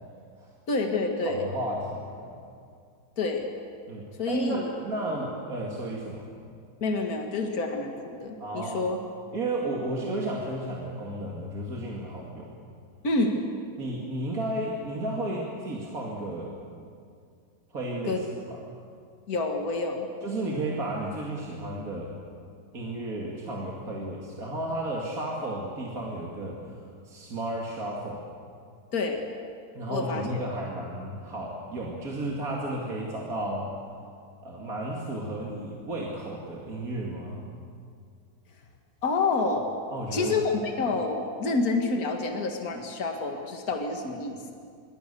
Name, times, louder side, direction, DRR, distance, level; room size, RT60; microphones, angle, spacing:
voice 1, 0.7-1.5 3.2-3.5 4.2-4.7 6.8-9.0 13.0-13.4 18.0-18.2 19.3-20.1 28.9-29.2 29.9-30.2 39.0-39.7 40.1-44.5, left 3 dB, 65° left, 3 dB, 2.4 m, -28 dB
voice 2, 1.3-2.4 3.9-6.3 8.4-8.8 9.3-12.5 13.8-16.5 17.7-18.6 20.2-22.2 22.7-26.6 27.0-28.3 29.7-33.7 34.4-37.5 39.9-40.4, right 1 dB, 60° right, -3 dB, 3.0 m, -33 dB
26.0 x 24.0 x 7.0 m, 2.3 s
omnidirectional pair, 1.7 m